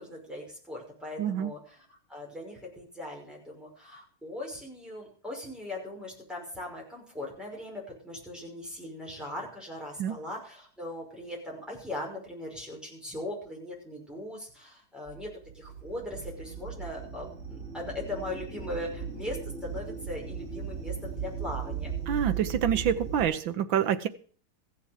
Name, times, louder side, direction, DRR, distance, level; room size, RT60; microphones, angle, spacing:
voice 1, 0.0-15.3 15.5-19.4 19.6-21.9, left 1 dB, ahead, -2 dB, 5.7 m, -39 dB
voice 2, 1.2-1.5 10.0-10.2 22.1-24.1, right 9 dB, 75° right, 10 dB, 1.7 m, -27 dB
sound 1, 15.1-23.2, right 7 dB, 30° right, 5.7 m, -37 dB
15.0 x 7.0 x 7.5 m, 0.43 s
omnidirectional pair, 2.2 m